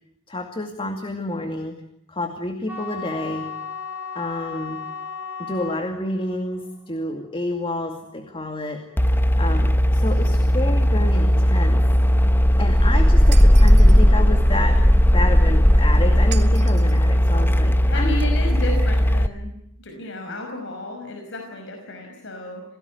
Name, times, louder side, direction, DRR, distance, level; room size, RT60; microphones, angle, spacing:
voice 1, 0.3-1.8 2.1-3.5 4.1-4.8 5.4-8.8 9.4-11.8 12.2-14.8 15.1-18.2, left 1 dB, 25° left, 6 dB, 2.3 m, -29 dB
sound 1, 2.7-8.8, left 7 dB, 10° right, 5.8 m, -36 dB
sound 2, 9.0-19.3, equal, 10° left, 1.0 m, -16 dB
Shatter, 13.3-14.1 16.3-17.0, right 10 dB, 55° right, 2.6 m, -37 dB
voice 2, 17.9-19.5 19.8-22.6, left 1 dB, 60° left, 3 dB, 5.5 m, -32 dB
28.5 x 18.0 x 9.4 m, 0.77 s
head